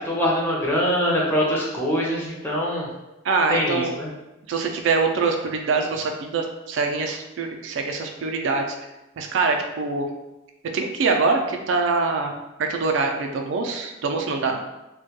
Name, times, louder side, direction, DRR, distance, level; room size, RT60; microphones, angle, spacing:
voice 1, 0.1-2.9 3.5-4.1, equal, 10° left, -5 dB, 0.5 m, -23 dB
voice 2, 3.2-4.0 4.5-8.7 9.2-10.1 10.7-14.6, right 4 dB, 75° right, 3 dB, 0.3 m, -24 dB
2.2 x 2.2 x 2.8 m, 0.99 s
head